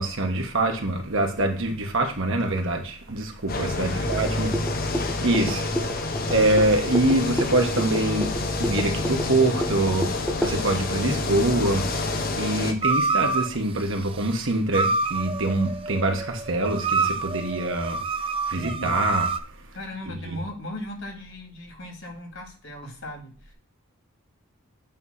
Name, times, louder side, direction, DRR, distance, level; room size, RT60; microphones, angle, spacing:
voice 1, 0.0-4.5 5.0-5.9 6.3-18.0 18.5-19.3 20.1-20.4, right 2 dB, 60° right, 1.4 m, -25 dB
sound 1, 3.5-12.7, left 2 dB, 40° left, 0.9 m, -28 dB
voice 2, 3.8-4.8 18.5-19.0 19.7-23.5, left 1 dB, 60° left, 2.2 m, -38 dB
sound 2, 4.1-10.6, equal, 5° left, 1.1 m, -32 dB
sound 3, 12.8-13.5 14.7-19.4, right 3 dB, 25° right, 0.4 m, -27 dB
9.0 x 3.1 x 5.6 m
head